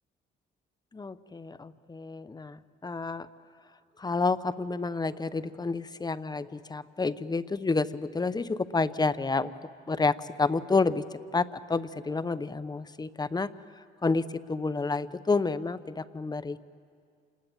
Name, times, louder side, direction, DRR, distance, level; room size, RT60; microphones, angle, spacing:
voice 1, 0.9-3.3 4.0-9.5 9.9-11.0 11.3-13.5 14.0-14.2 14.5-16.6, left 3 dB, 20° left, 15 dB, 0.8 m, -29 dB
28.0 x 20.0 x 8.9 m, 2.3 s
cardioid pair, 90°, 20 cm